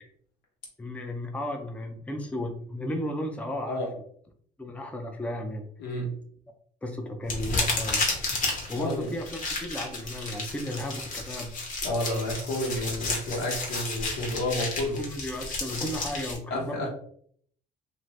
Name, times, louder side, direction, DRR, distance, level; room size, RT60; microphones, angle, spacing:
voice 1, 0.8-3.8 4.6-5.6 6.8-8.2 8.7-11.5 15.0-16.9, left 1 dB, 10° left, 3 dB, 0.4 m, -34 dB
voice 2, 5.8-6.1 8.8-9.1 11.8-15.0 16.5-16.9, left 1 dB, 85° left, -2 dB, 1.3 m, -30 dB
sound 1, 7.3-16.4, left 3 dB, 50° left, 1.0 m, -32 dB
2.6 x 2.5 x 3.2 m, 0.62 s
cardioid pair, 110°, 17 cm